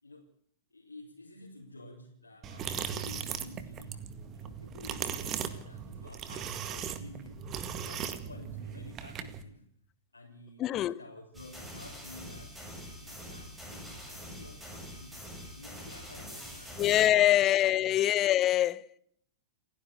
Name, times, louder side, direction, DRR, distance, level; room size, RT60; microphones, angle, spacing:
voice 1, 0.7-9.6 10.1-12.6 13.0-15.3 15.5-17.9, left 2 dB, 85° left, 3.8 m, -51 dB
sound 1, 2.4-9.4, right 8 dB, 30° right, 2.0 m, -38 dB
voice 2, 10.6-11.0 16.8-18.9, left 13 dB, 30° left, 0.9 m, -24 dB
sound 2, 11.3-17.1, equal, 5° right, 7.2 m, -45 dB
29.5 x 10.5 x 8.3 m
figure-of-eight pair, 100°, 0 cm